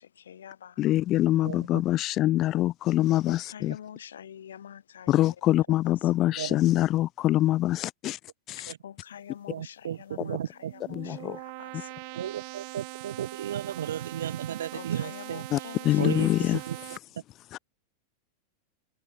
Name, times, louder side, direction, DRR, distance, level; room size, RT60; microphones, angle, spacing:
voice 1, 0.0-0.8 3.3-5.4 5.8-6.1 8.6-11.9 14.7-16.5, left 9 dB, 65° left, 1.7 m, -46 dB
voice 2, 0.8-3.7 5.1-8.2 8.5-8.6 11.0-11.4 15.5-15.6 15.8-16.6 17.5-17.6, left 14 dB, 35° left, 0.6 m, -24 dB
voice 3, 1.4-1.8 6.3-6.6 8.7-8.8 9.5-10.7 12.1-15.7 16.0-16.8, right 10 dB, 65° right, 1.2 m, -34 dB
sound 1, 10.5-17.0, right 36 dB, 45° right, 3.3 m, -42 dB
figure-of-eight pair, 90°, 0 cm